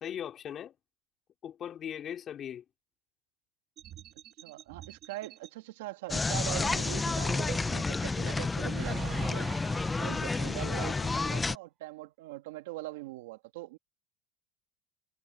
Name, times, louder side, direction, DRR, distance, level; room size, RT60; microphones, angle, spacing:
voice 1, 0.0-0.7 1.4-2.6 10.7-11.1, left 9 dB, 40° left, 3.2 m, -39 dB
sound 1, 3.8-5.5 6.4-7.9 8.6-10.7, right 11 dB, 50° right, 2.1 m, -45 dB
voice 2, 4.4-9.5 10.0-13.8, right 18 dB, 85° right, 2.0 m, -42 dB
sound 2, 6.1-11.6, left 3 dB, 15° left, 0.6 m, -30 dB
supercardioid pair, 115°, 0 cm